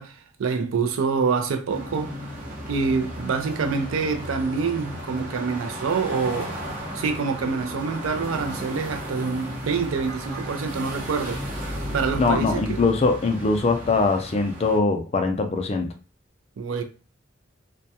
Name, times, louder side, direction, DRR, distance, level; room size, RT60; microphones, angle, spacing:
voice 1, 0.0-2.1 2.7-11.5 11.9-12.8 16.6-16.8, right 5 dB, 85° right, 0.4 m, -26 dB
sound 1, 1.7-14.8, equal, 40° right, 0.8 m, -34 dB
voice 2, 12.2-15.9, left 3 dB, 30° left, 0.3 m, -22 dB
2.2 x 2.2 x 2.7 m
head